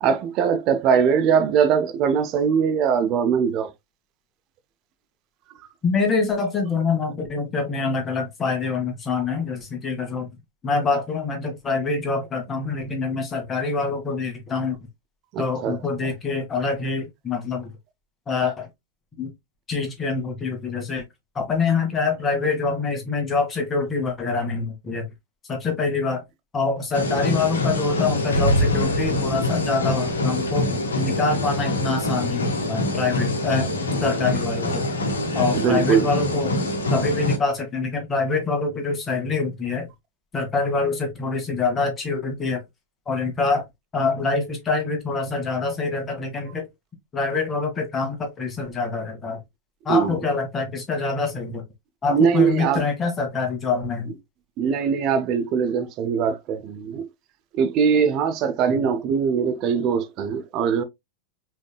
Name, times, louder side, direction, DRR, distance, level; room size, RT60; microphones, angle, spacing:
voice 1, 0.0-3.7 15.3-15.8 35.5-36.1 49.9-50.1 52.1-52.8 54.6-57.1 57.5-60.8, right 7 dB, 40° right, 0.6 m, -21 dB
voice 2, 5.8-10.3 10.6-14.8 15.4-17.7 18.3-18.7 19.2-19.3 19.7-21.0 21.3-25.1 25.5-26.2 26.5-30.7 31.0-34.9 35.3-36.5 36.9-39.9 40.3-42.6 43.1-43.6 43.9-46.7 47.1-49.4 49.8-51.6 52.0-54.1 58.7-58.8, left 4 dB, 20° left, 1.6 m, -25 dB
sound 1, 26.9-37.4, left 1 dB, 70° left, 1.1 m, -24 dB
5.0 x 3.5 x 2.3 m
figure-of-eight pair, 90°, 0 cm